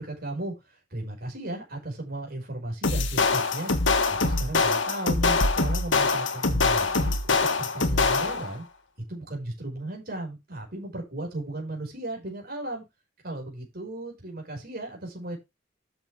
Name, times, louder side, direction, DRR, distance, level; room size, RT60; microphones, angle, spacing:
voice 1, 0.0-3.7 4.1-8.6 9.1-12.8 13.2-15.4, right 1 dB, 55° right, 5.2 m, -35 dB
sound 1, 2.8-8.5, left 3 dB, 90° left, 1.6 m, -24 dB
12.0 x 7.0 x 3.3 m
head